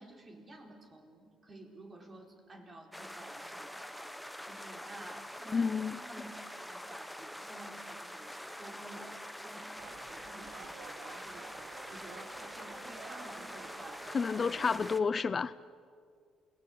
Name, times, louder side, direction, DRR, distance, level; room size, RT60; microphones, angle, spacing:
voice 1, 0.0-4.1 4.4-14.7, right 1 dB, 35° right, 4.6 m, -52 dB
sound 1, 2.9-15.0, equal, ahead, 1.3 m, -45 dB
voice 2, 5.5-6.0 14.1-15.5, left 5 dB, 35° left, 0.6 m, -30 dB
sound 2, 9.8-15.0, right 7 dB, 75° right, 1.4 m, -52 dB
28.0 x 18.5 x 8.7 m
cardioid pair, 90°, 0 cm